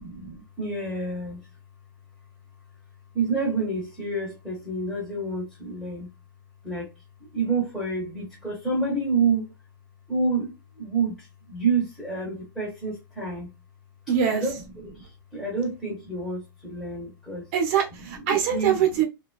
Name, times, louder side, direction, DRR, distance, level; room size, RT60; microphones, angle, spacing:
voice 1, 0.0-1.4 3.1-6.1 6.6-6.9 7.3-9.5 10.1-13.5 14.3-17.5 18.2-18.7, right 4 dB, ahead, 0.7 m, -28 dB
voice 2, 14.1-14.4 17.5-19.0, right 8 dB, 35° right, 0.8 m, -23 dB
2.7 x 2.2 x 2.3 m
supercardioid pair, 175°, 12 cm